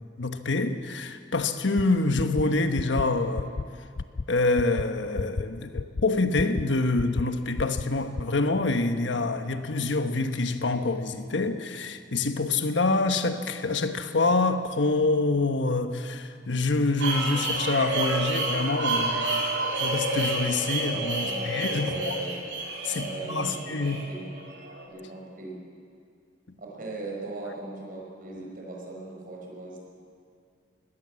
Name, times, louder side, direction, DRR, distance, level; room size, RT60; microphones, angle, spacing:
voice 1, 0.0-3.5 4.3-19.4 19.7-22.1 22.8-24.0, left 3 dB, 75° left, 1.2 m, -26 dB
sound 1, 1.8-1.9 2.2-2.4 2.8-3.0 3.4-3.6 4.0-4.2 4.6-4.8 5.2-5.4 5.8-6.0 6.4-6.6 7.0-7.2 7.6-7.8 8.2-8.3, left 4 dB, 45° left, 0.4 m, -30 dB
sound 2, 17.0-24.9, right 2 dB, 70° right, 3.8 m, -29 dB
voice 2, 21.2-22.3 22.9-24.3 24.9-25.6 26.6-29.9, right 2 dB, 50° right, 5.1 m, -39 dB
21.0 x 17.5 x 7.6 m
head